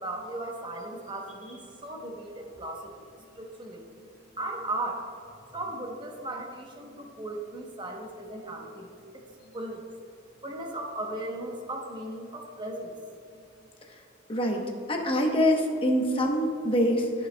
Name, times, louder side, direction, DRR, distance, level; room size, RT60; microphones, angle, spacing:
voice 1, 0.0-4.1 4.3-5.1 5.5-9.9 10.4-12.9 13.3-13.4, right 1 dB, 25° right, 1 dB, 0.9 m, -37 dB
voice 2, 14.3-14.6 14.9-17.3, equal, 25° left, 1 dB, 0.9 m, -25 dB
13.5 x 5.5 x 2.2 m, 2.5 s
head